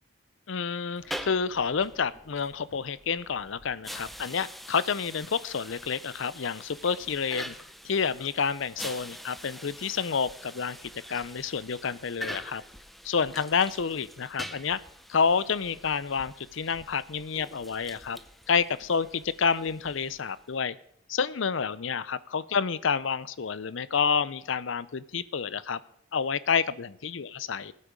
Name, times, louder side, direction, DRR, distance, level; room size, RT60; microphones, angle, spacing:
voice 1, 0.5-7.6 7.8-10.8 11.1-12.6 13.0-14.8 15.1-18.2 18.5-20.8 21.1-25.8 26.1-27.7, left 6 dB, 75° left, 18 dB, 0.6 m, -29 dB
sound 1, 0.9-20.5, equal, ahead, 0.5 m, -45 dB
19.5 x 8.5 x 5.2 m, 0.69 s
head